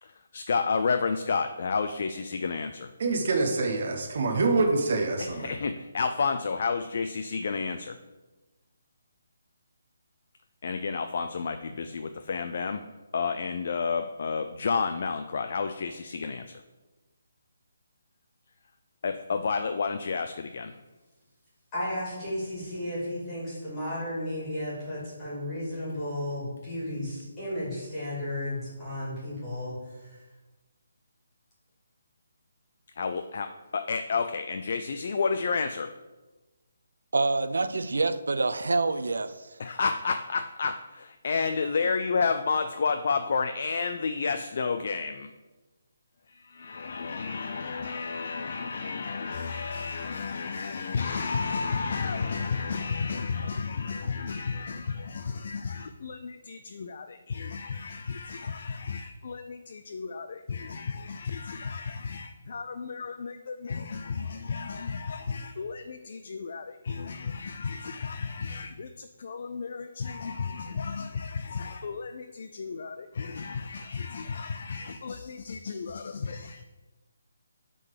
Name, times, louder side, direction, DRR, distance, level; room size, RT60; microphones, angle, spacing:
voice 1, 0.0-2.9 5.2-8.0 10.6-12.9 13.1-16.6 19.0-20.8 33.0-35.9 39.6-45.3 46.3-76.6, left 5 dB, 35° left, 8 dB, 0.3 m, -31 dB
voice 2, 3.0-5.5, right 3 dB, 35° right, 2 dB, 0.9 m, -26 dB
voice 3, 21.7-30.2, left 1 dB, 10° left, -8 dB, 2.5 m, -34 dB
voice 4, 37.1-39.5, right 3 dB, 90° right, 12 dB, 0.6 m, -26 dB
7.8 x 3.8 x 6.6 m, 1.2 s
hypercardioid pair, 180°, 0 cm